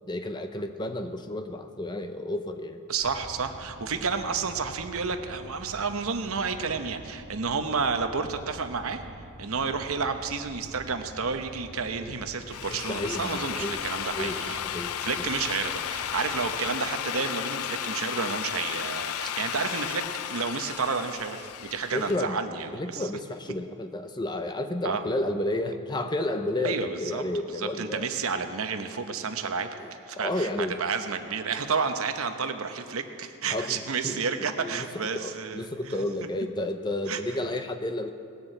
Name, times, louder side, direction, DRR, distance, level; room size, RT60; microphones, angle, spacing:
voice 1, 0.1-2.8 12.7-13.8 14.1-14.9 21.9-22.4 22.7-28.0 29.8-30.8 33.5-38.1, left 1 dB, 20° left, 7 dB, 0.6 m, -32 dB
voice 2, 2.9-9.0 9.4-14.6 15.0-23.1 24.8-25.0 26.6-27.2 27.6-29.7 30.1-35.7 37.1-37.2, right 5 dB, 65° right, 7 dB, 0.9 m, -31 dB
sound 1, 3.0-16.8, right 1 dB, 85° right, 1.9 m, -47 dB
Drill, 12.3-22.2, left 10 dB, 75° left, 0.4 m, -34 dB
19.0 x 6.9 x 7.8 m, 2.4 s
head